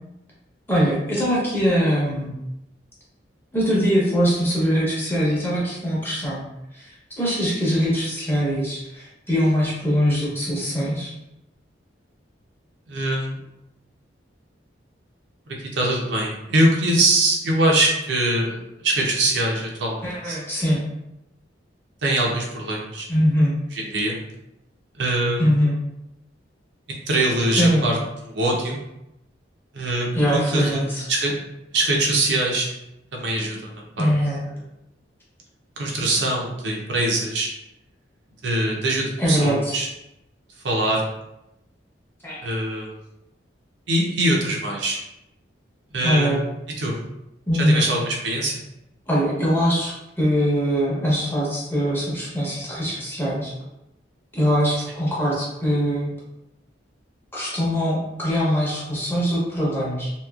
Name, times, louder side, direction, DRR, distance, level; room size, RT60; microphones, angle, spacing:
voice 1, 0.7-2.3 3.5-6.4 6.7-11.1 20.0-20.8 23.1-23.6 25.4-25.7 27.5-27.9 30.1-31.0 34.0-34.4 39.2-39.8 42.2-42.4 46.0-46.4 47.5-47.9 49.1-53.5 54.3-56.1 57.3-60.1, equal, 10° left, -6 dB, 0.8 m, -22 dB
voice 2, 12.9-13.4 15.6-18.6 18.8-20.4 22.0-23.1 23.7-24.2 25.0-25.4 26.9-28.0 28.2-28.8 29.7-30.8 31.1-31.3 31.7-32.7 33.1-33.7 34.0-34.1 35.8-37.5 38.4-39.9 40.6-41.1 42.4-42.9 43.9-45.0 45.9-46.3 46.8-47.0 47.5-48.5, right 1 dB, 70° right, -1 dB, 0.6 m, -23 dB
2.9 x 2.7 x 2.3 m, 0.88 s
head